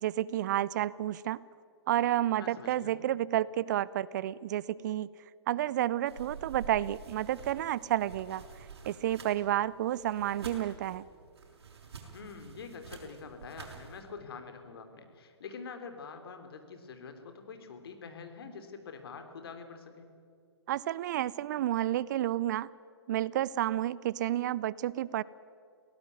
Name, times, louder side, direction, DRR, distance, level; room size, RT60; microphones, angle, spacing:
voice 1, 0.0-1.4 1.9-5.1 5.5-8.4 8.9-11.0 20.7-22.7 23.1-25.2, right 13 dB, 40° right, 21 dB, 0.5 m, -30 dB
voice 2, 2.3-2.9 12.1-20.1, left 5 dB, 60° left, 6 dB, 3.4 m, -46 dB
sound 1, 6.1-14.0, right 4 dB, 65° right, 5.8 m, -48 dB
22.5 x 17.5 x 9.6 m, 2.3 s
figure-of-eight pair, 125°, 14 cm